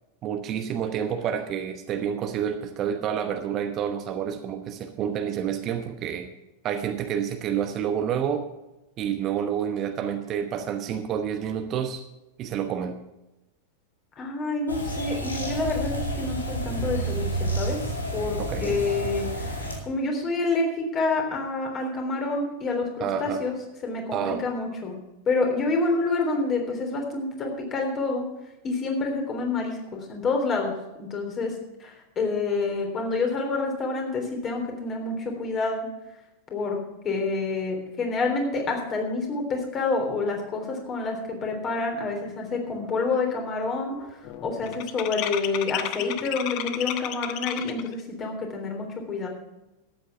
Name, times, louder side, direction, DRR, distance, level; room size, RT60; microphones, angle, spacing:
voice 1, 0.2-6.3 6.6-8.4 9.0-12.0 12.4-13.0 18.4-18.8 23.0-23.4 24.1-24.4, right 8 dB, 35° right, 7 dB, 1.0 m, -29 dB
voice 2, 14.2-17.8 18.1-23.6 23.8-25.0 25.3-28.2 28.6-30.7 31.0-31.5 31.8-35.9 36.5-44.2 44.4-49.3, left 3 dB, 30° left, 2 dB, 3.5 m, -28 dB
sound 1, 14.7-19.8, right 1 dB, 80° left, 2.4 m, -30 dB
sound 2, 42.3-42.4 42.7-43.1 43.3-47.9, left 12 dB, 45° left, 0.8 m, -33 dB
13.0 x 8.8 x 5.8 m, 0.97 s
figure-of-eight pair, 90°, 0 cm